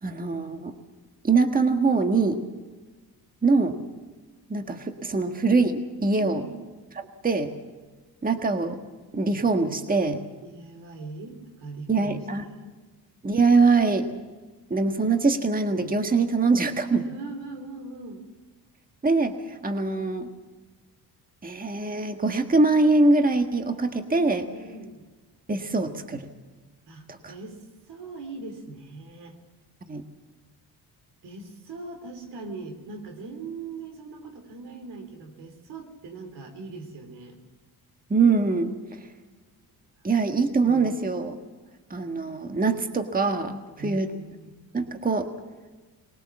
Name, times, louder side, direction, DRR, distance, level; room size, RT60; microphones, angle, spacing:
voice 1, 0.0-0.7 1.2-2.4 3.4-3.8 4.5-6.4 7.0-7.5 8.2-8.8 9.1-10.2 11.9-12.4 13.2-14.1 14.7-17.0 19.0-20.3 21.4-24.5 25.5-26.3 27.1-27.3 29.9-30.0 38.1-39.0 40.0-41.4 41.9-44.1 44.7-45.3, right 3 dB, 20° right, 6 dB, 1.6 m, -23 dB
voice 2, 6.1-6.6 10.4-12.8 17.0-18.3 24.5-25.0 26.9-29.4 31.2-37.4 43.8-44.5, right 3 dB, 85° right, 5 dB, 3.7 m, -41 dB
20.5 x 19.0 x 7.4 m, 1.3 s
cardioid pair, 80°, 39 cm